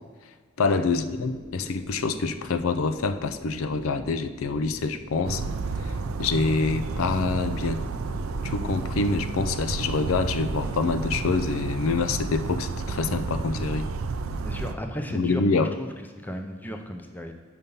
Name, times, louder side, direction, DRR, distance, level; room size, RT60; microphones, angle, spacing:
voice 1, 0.6-5.4 6.2-7.8 8.4-13.9 15.1-15.7, left 4 dB, 80° left, 10 dB, 0.4 m, -26 dB
sound 1, 0.9-10.1, right 1 dB, 20° right, 0.8 m, -44 dB
Bird vocalization bird call bird song, 5.2-14.7, right 4 dB, 80° right, 0.5 m, -31 dB
voice 2, 14.4-17.3, equal, 10° left, 5 dB, 0.5 m, -35 dB
6.8 x 5.6 x 5.4 m, 1.5 s
head